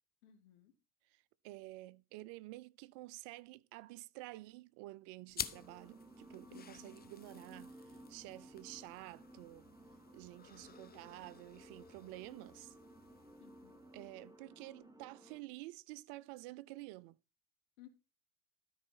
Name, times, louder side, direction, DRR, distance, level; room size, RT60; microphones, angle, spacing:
voice 1, 0.2-0.7 6.5-7.0 13.4-13.8 17.8-17.9, left 12 dB, 75° left, 2.1 m, -59 dB
voice 2, 1.0-9.7 10.1-12.8 13.9-17.2, right 19 dB, 60° right, 0.7 m, -51 dB
sound 1, 5.3-14.3, left 7 dB, 20° left, 0.7 m, -51 dB
sound 2, 5.4-15.4, right 2 dB, 5° right, 1.6 m, -58 dB
13.0 x 4.8 x 5.9 m
hypercardioid pair, 65°, 48 cm